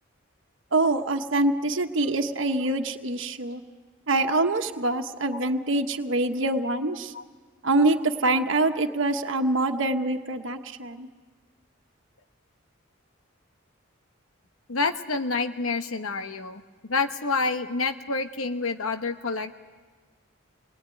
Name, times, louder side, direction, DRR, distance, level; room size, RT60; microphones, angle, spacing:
voice 1, 0.7-3.6 4.1-7.1 7.6-11.1, right 2 dB, 65° right, 4 dB, 1.2 m, -25 dB
voice 2, 14.7-19.5, left 4 dB, 90° left, 7 dB, 1.1 m, -28 dB
27.0 x 21.0 x 9.2 m, 1.5 s
head